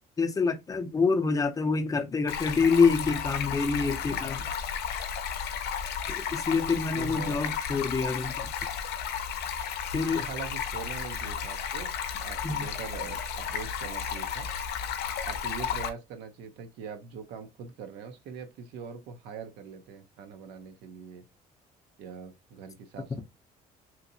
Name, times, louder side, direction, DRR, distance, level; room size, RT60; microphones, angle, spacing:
voice 1, 0.2-4.4 6.2-8.5 9.9-10.2 12.4-12.7, left 4 dB, 20° left, 0.5 m, -26 dB
Stream, 2.3-15.9, left 7 dB, 75° left, 0.5 m, -33 dB
voice 2, 6.9-7.4 10.1-11.9 12.2-14.5 15.2-21.2 22.0-23.2, right 6 dB, 85° right, 0.7 m, -42 dB
2.8 x 2.7 x 2.6 m
cardioid pair, 110°, 17 cm